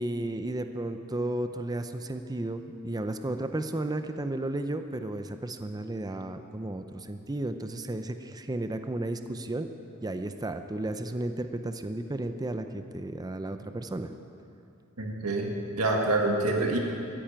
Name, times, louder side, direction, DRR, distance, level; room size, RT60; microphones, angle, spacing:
voice 1, 0.0-9.7 10.0-14.1, right 1 dB, 15° right, 8 dB, 0.5 m, -33 dB
voice 2, 15.0-16.8, right 2 dB, 90° right, 1 dB, 1.8 m, -27 dB
13.5 x 11.0 x 8.8 m, 2.7 s
head